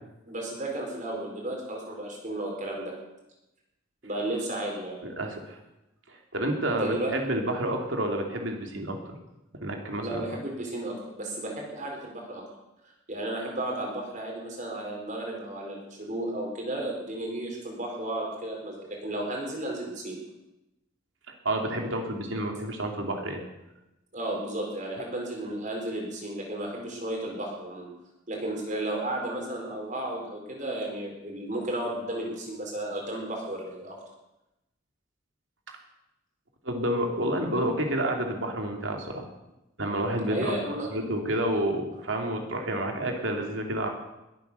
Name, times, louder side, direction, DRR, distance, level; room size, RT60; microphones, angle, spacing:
voice 1, 0.3-2.9 4.0-5.0 6.6-7.1 10.0-12.4 13.1-20.2 24.1-27.9 28.3-34.0 40.3-40.9, right 1 dB, 40° right, -1 dB, 4.4 m, -33 dB
voice 2, 5.0-5.6 6.1-9.0 9.6-10.2 21.4-23.4 36.6-39.3 39.8-43.9, right 1 dB, 70° right, 2 dB, 2.9 m, -29 dB
21.5 x 9.0 x 6.9 m, 0.95 s
head